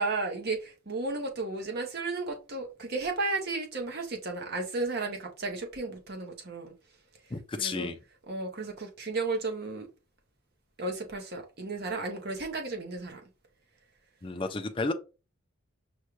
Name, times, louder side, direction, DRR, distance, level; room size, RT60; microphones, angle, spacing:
voice 1, 0.0-6.7 7.6-7.9 8.3-9.9 10.8-13.2, right 3 dB, 50° right, 0.9 m, -33 dB
voice 2, 7.3-8.0 14.2-14.9, left 3 dB, 25° left, 0.4 m, -32 dB
5.4 x 2.3 x 3.1 m
head